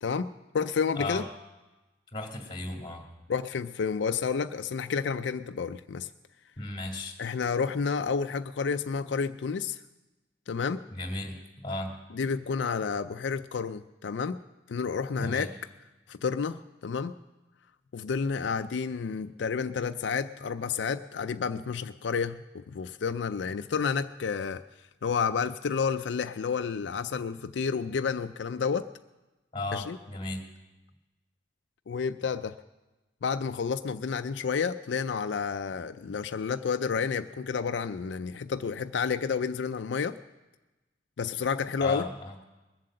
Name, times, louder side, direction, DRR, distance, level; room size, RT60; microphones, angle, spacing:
voice 1, 0.0-1.2 3.3-6.1 7.2-9.8 10.5-10.8 12.1-14.4 14.7-15.5 16.1-17.1 17.9-24.6 25.0-28.9 29.7-30.0 31.9-32.6 33.2-40.2 41.2-42.0, left 5 dB, 90° left, 9 dB, 0.4 m, -30 dB
voice 2, 0.9-1.2 2.1-3.0 6.6-7.1 10.9-11.4 11.6-12.0 15.1-15.5 29.5-30.4 41.8-42.4, left 2 dB, 25° left, 1 dB, 2.5 m, -35 dB
21.0 x 7.6 x 7.6 m, 1.1 s
head